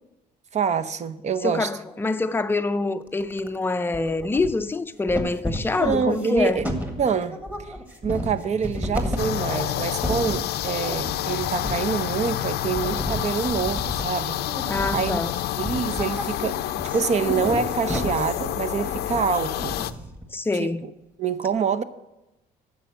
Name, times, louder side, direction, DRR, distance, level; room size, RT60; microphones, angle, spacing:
voice 1, 0.5-1.7 5.7-6.6 7.0-7.7 8.0-14.4 14.9-15.2 15.6-16.6 16.9-19.8 20.5-20.9 21.2-21.8, right 6 dB, 40° right, 0.7 m, -26 dB
voice 2, 1.4-6.6 14.7-15.3 20.3-20.8, left 3 dB, 15° left, 0.5 m, -25 dB
sound 1, 3.1-3.6 3.9-4.8 5.1-20.2, equal, 10° right, 1.7 m, -33 dB
sound 2, 9.2-19.9, left 14 dB, 75° left, 0.5 m, -28 dB
9.8 x 7.0 x 7.8 m
cardioid pair, 110°, 17 cm